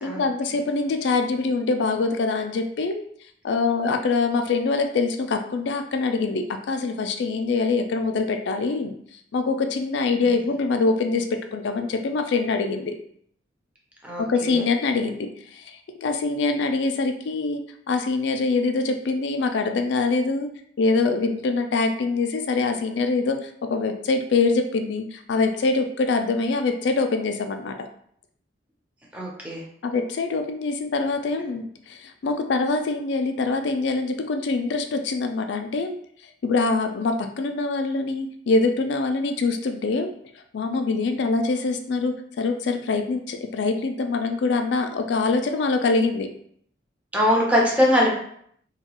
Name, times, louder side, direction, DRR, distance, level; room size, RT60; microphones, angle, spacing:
voice 1, 0.0-3.0 3.4-9.0 9.3-13.0 14.3-17.6 17.9-20.5 20.8-27.9 29.8-35.9 36.4-40.1 40.5-46.3, left 3 dB, 70° left, 5 dB, 0.4 m, -24 dB
voice 2, 14.0-14.7 29.1-29.6 47.1-48.1, left 1 dB, 5° right, -3 dB, 0.6 m, -22 dB
2.8 x 2.3 x 2.9 m, 0.65 s
head